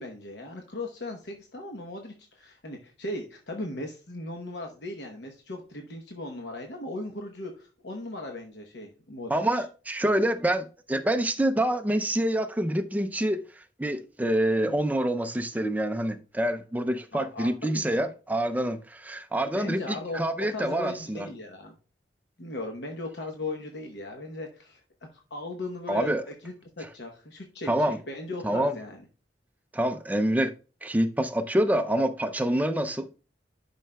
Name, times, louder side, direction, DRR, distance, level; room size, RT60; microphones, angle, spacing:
voice 1, 0.0-9.4 17.1-18.1 19.5-20.2 20.5-21.7 22.4-24.8 25.1-29.0, left 2 dB, 65° left, 0.9 m, -38 dB
voice 2, 9.3-21.3 25.9-26.2 27.7-28.0 28.4-28.7 29.7-30.5 30.8-33.1, right 1 dB, 10° right, 0.4 m, -26 dB
11.0 x 5.5 x 2.2 m
head